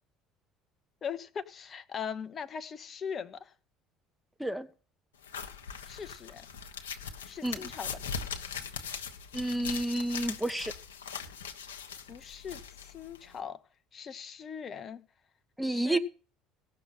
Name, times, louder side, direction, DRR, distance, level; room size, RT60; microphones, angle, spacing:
voice 1, 1.0-3.5 5.8-6.5 7.2-8.0 12.1-13.6 13.9-15.0 15.6-16.0, left 7 dB, 40° left, 1.0 m, -40 dB
sound 1, 5.2-13.4, left 6 dB, 85° left, 1.2 m, -41 dB
voice 2, 9.3-10.7 15.6-16.0, right 1 dB, ahead, 1.4 m, -30 dB
17.0 x 6.4 x 5.6 m
hypercardioid pair, 65°, 0 cm